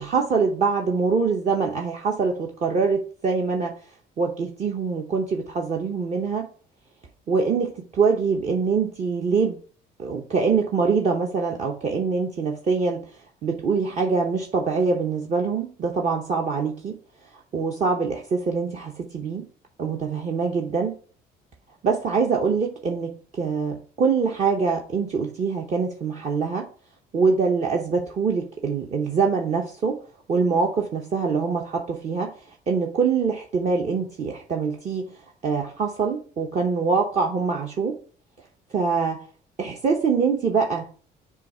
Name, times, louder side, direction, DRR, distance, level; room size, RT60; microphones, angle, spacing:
voice 1, 0.0-3.7 4.2-6.5 7.3-9.6 10.0-13.0 13.4-17.0 17.5-19.5 19.8-20.9 21.8-26.7 27.1-30.0 30.3-32.3 32.7-35.1 35.4-38.0 38.7-39.2 39.6-40.9, right 5 dB, 45° right, 0.9 m, -24 dB
7.3 x 2.4 x 5.4 m
cardioid pair, 110°, 17 cm